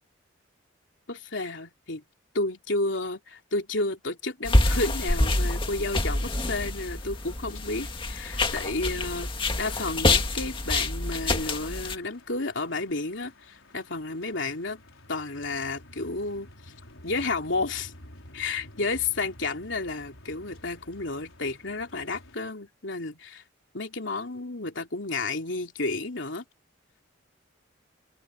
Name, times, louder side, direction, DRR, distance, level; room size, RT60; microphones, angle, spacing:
voice 1, 1.1-2.0 2.3-9.3 9.6-14.8 15.1-16.5 17.0-17.9 18.3-23.4 23.7-26.4, left 3 dB, 70° left, 3.3 m, -31 dB
sound 1, 4.4-12.0, left 2 dB, 25° left, 2.1 m, -26 dB
sound 2, 5.9-22.4, left 1 dB, 90° left, 5.0 m, -51 dB
open air
head